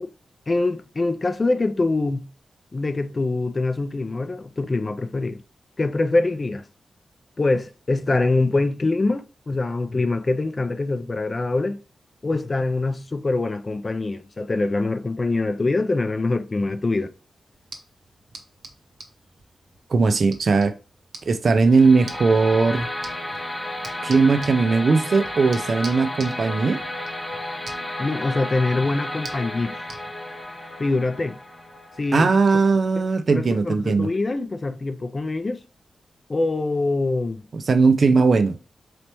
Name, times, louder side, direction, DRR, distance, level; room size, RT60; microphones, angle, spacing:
voice 1, 0.5-2.3 2.7-5.4 5.8-6.6 7.4-11.8 12.2-17.1 28.0-29.8 30.8-31.4 32.0-32.3 33.3-35.6 36.3-37.4, left 2 dB, 30° left, 0.4 m, -24 dB
sound 1, 17.5-30.0, right 3 dB, 70° right, 1.0 m, -45 dB
voice 2, 19.9-20.7 21.3-22.9 24.0-26.8 32.1-34.1 37.5-38.6, right 4 dB, 50° right, 0.4 m, -18 dB
sound 2, 21.7-32.7, left 1 dB, 5° left, 1.0 m, -33 dB
4.1 x 3.3 x 2.9 m
wide cardioid pair, 150°, 0 cm